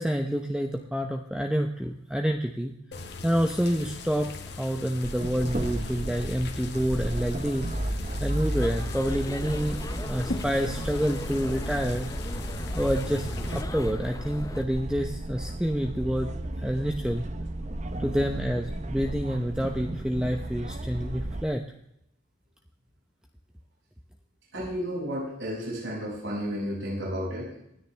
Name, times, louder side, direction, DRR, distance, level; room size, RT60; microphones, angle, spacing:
voice 1, 0.0-2.8 3.2-4.3 4.6-7.7 8.2-9.8 10.0-12.1 12.7-16.3 16.6-17.2 18.0-21.6, equal, 5° right, 3 dB, 0.8 m, -28 dB
sound 1, 2.9-13.6, left 2 dB, 55° left, 1.6 m, -39 dB
sound 2, 5.0-21.4, right 1 dB, 35° right, 0.8 m, -34 dB
sound 3, 8.5-14.6, left 1 dB, 15° left, 0.5 m, -37 dB
voice 2, 24.5-27.5, equal, 70° right, -5 dB, 7.1 m, -32 dB
25.5 x 10.0 x 3.4 m, 0.75 s
head